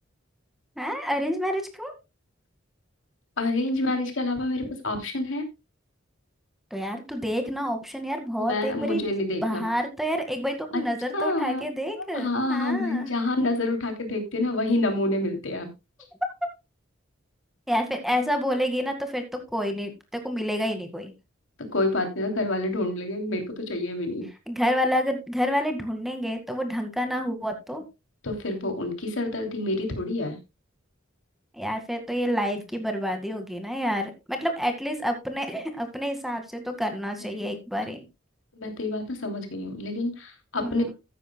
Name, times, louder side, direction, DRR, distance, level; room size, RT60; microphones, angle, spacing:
voice 1, 0.8-1.9 6.7-9.1 9.4-13.1 17.7-21.1 24.5-27.8 31.5-38.0 40.6-40.9, equal, ahead, 5 dB, 2.0 m, -28 dB
voice 2, 3.4-5.4 8.5-9.6 10.7-10.8 11.1-11.6 11.9-15.7 21.7-24.3 28.2-30.4 37.3-37.4 38.5-40.8, left 2 dB, 80° left, 5 dB, 3.1 m, -28 dB
14.5 x 10.0 x 2.3 m, 0.25 s
head